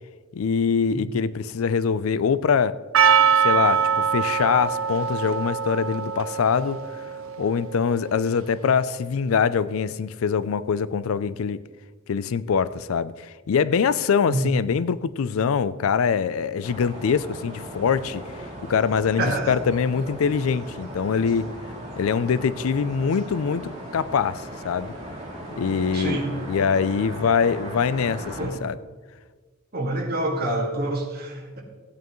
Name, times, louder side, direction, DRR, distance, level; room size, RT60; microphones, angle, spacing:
voice 1, 0.3-2.8 3.4-6.8 7.4-11.6 12.1-18.2 18.7-21.5 22.0-24.9 25.6-28.8, left 6 dB, 85° left, 0.4 m, -23 dB
Percussion, 2.9-7.9, right 7 dB, 85° right, 0.6 m, -23 dB
voice 2, 14.3-14.6 19.2-19.6 25.6-26.3 28.4-28.7 29.7-31.6, right 1 dB, 50° right, 2.0 m, -27 dB
sound 1, 16.6-28.5, right 1 dB, 35° right, 2.9 m, -38 dB
15.5 x 9.1 x 3.1 m
head